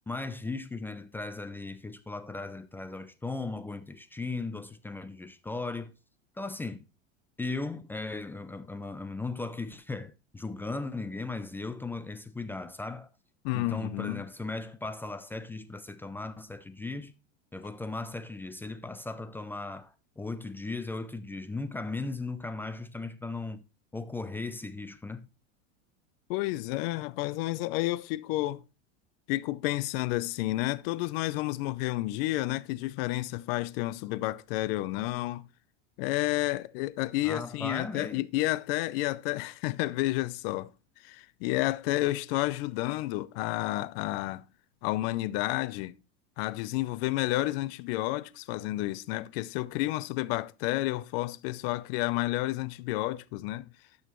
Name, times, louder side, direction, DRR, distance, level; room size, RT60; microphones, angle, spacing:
voice 1, 0.1-5.9 6.4-6.8 7.4-13.1 13.5-17.1 17.5-23.6 23.9-25.3 37.2-38.2, left 3 dB, 5° left, 0.4 m, -37 dB
voice 2, 13.4-14.3 26.3-28.6 29.3-35.5 36.0-40.7 41.0-44.4 44.8-45.9 46.4-53.7, left 18 dB, 60° left, 0.7 m, -30 dB
12.0 x 6.5 x 3.1 m
supercardioid pair, 145°, 32 cm